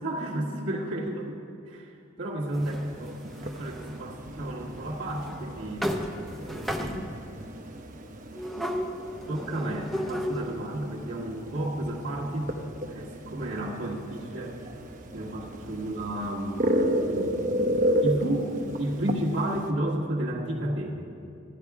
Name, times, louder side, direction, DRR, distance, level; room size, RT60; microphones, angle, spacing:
voice 1, 0.0-1.4 1.7-1.9 2.2-5.9 6.4-7.0 9.3-12.5 12.9-14.5 15.1-17.4 18.0-18.5 18.8-21.1, right 1 dB, 70° right, -6 dB, 1.5 m, -32 dB
sound 1, 2.5-4.0 4.7-4.8 5.2-5.4 5.8-7.3 8.3-10.7, equal, ahead, 0.6 m, -34 dB
sound 2, 2.6-19.7, equal, 40° right, 0.8 m, -33 dB
13.5 x 9.7 x 4.8 m, 2.7 s
head